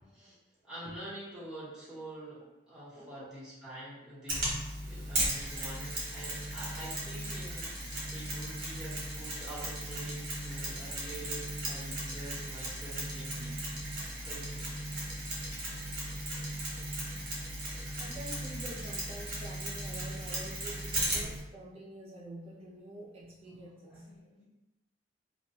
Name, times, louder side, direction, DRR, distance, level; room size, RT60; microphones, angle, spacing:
voice 1, 0.6-13.6 14.2-14.7 23.8-24.5, right 1 dB, 5° right, -11 dB, 0.9 m, -46 dB
Mechanisms, 4.3-21.4, right 1 dB, 50° right, 0.8 m, -36 dB
voice 2, 18.0-24.1, right 1 dB, 35° right, -5 dB, 0.4 m, -47 dB
2.3 x 2.1 x 2.6 m, 0.97 s
head